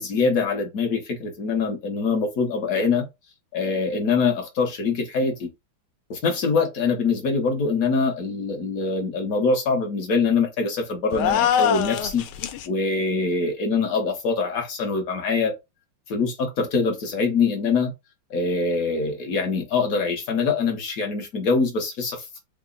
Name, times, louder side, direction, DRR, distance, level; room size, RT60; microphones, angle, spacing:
voice 1, 0.0-3.0 3.5-5.5 6.1-12.2 12.7-15.5 16.1-17.9 18.3-22.3, left 4 dB, 60° left, 0.9 m, -24 dB
sound 1, 11.1-12.7, left 9 dB, 80° left, 1.4 m, -23 dB
3.7 x 2.0 x 3.6 m
omnidirectional pair, 2.3 m